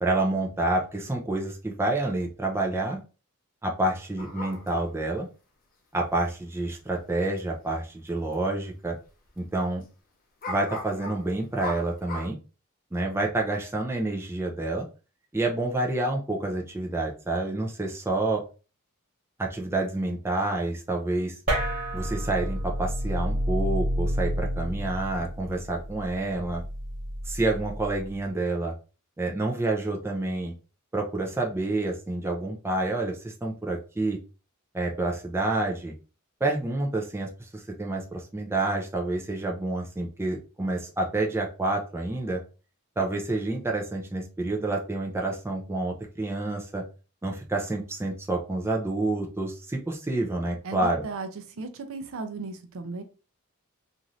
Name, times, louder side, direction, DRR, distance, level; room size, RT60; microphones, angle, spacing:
voice 1, 0.0-3.0 3.6-5.3 5.9-9.0 9.4-9.8 10.5-12.4 12.9-14.9 15.3-18.4 19.4-21.4 21.9-26.6 27.3-28.7 29.2-30.5 30.9-34.2 34.7-35.9 36.4-42.4 43.0-46.9 47.2-51.0, right 2 dB, 10° right, 0 dB, 0.4 m, -28 dB
sound 1, 4.2-5.0 6.9-7.0 7.4-7.5 8.1-8.3 8.6-8.7 10.4-12.3, left 2 dB, 40° left, 0.6 m, -37 dB
sound 2, 21.5-28.2, equal, 40° right, 1.0 m, -30 dB
voice 2, 50.6-53.0, right 3 dB, 65° right, 8 dB, 0.5 m, -36 dB
3.0 x 2.5 x 2.5 m, 0.33 s
head